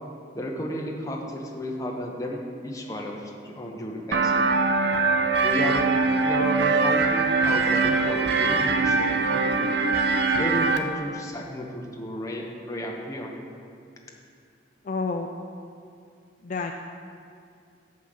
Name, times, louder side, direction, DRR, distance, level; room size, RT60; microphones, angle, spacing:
voice 1, 0.3-4.5 5.4-9.8 10.3-13.3, equal, 20° left, 0 dB, 0.9 m, -33 dB
sound 1, 4.1-10.8, right 4 dB, 70° right, 0.6 m, -22 dB
voice 2, 14.8-15.3 16.4-16.7, left 4 dB, 45° left, 3 dB, 0.4 m, -29 dB
7.3 x 5.6 x 6.4 m, 2.4 s
head